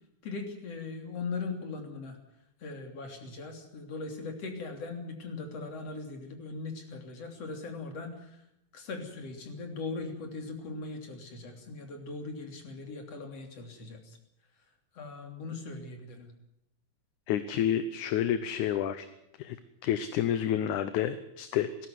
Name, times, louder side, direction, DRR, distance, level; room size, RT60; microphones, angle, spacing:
voice 1, 0.2-2.2 2.6-8.4 8.7-14.2 15.0-16.3, left 3 dB, 50° left, 5 dB, 4.1 m, -39 dB
voice 2, 17.3-19.1 19.4-19.6 19.8-21.9, left 10 dB, 75° left, 12 dB, 2.3 m, -29 dB
19.0 x 16.5 x 9.4 m, 0.81 s
omnidirectional pair, 3.7 m